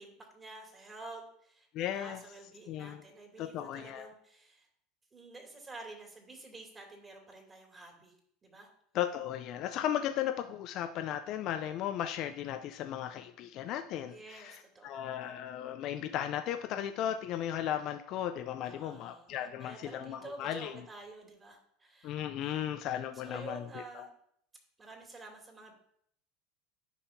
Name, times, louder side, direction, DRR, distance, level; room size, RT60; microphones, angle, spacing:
voice 1, 0.0-4.7 5.1-8.1 8.4-8.7 14.1-15.2 18.6-22.7 22.9-24.1 24.8-25.7, right 2 dB, 25° right, 2 dB, 2.6 m, -50 dB
voice 2, 1.7-2.2 2.7-3.0 3.4-4.1 8.9-20.8 22.0-24.1, left 10 dB, 50° left, 7 dB, 0.4 m, -36 dB
10.0 x 5.5 x 2.7 m, 0.67 s
hypercardioid pair, 80°, 0 cm